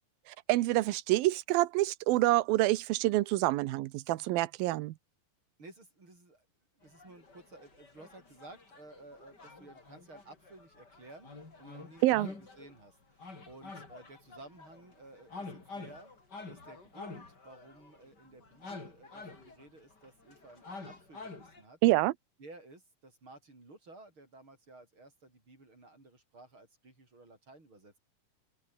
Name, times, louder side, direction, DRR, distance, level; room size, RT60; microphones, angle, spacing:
voice 1, 0.5-4.9 12.0-12.3 21.8-22.1, right 17 dB, 80° right, 2.6 m, -27 dB
voice 2, 5.6-6.5 6.7-11.3 11.6-16.1 16.5-21.8 22.4-28.0, right 2 dB, 30° right, 7.6 m, -54 dB
sound 1, 6.9-12.8 13.2-21.6, left 3 dB, 25° left, 4.5 m, -48 dB
open air
omnidirectional pair, 4.3 m